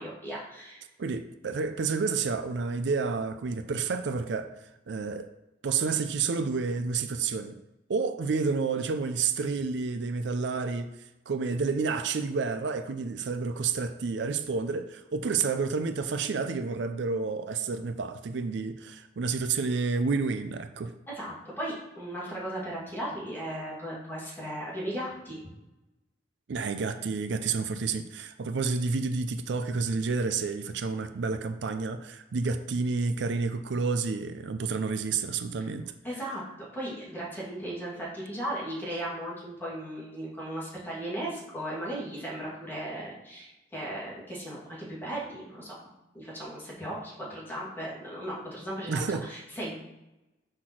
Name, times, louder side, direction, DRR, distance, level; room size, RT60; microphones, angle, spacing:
voice 1, 0.0-0.8 21.1-25.4 36.0-36.4 36.7-45.7 46.1-49.8, right 1 dB, 10° left, -7 dB, 2.4 m, -36 dB
voice 2, 1.0-4.5 4.9-5.3 5.6-7.6 7.9-10.9 11.3-20.9 26.5-35.9 48.9-49.3, right 4 dB, 70° right, 9 dB, 0.4 m, -30 dB
5.8 x 4.3 x 6.2 m, 0.98 s
head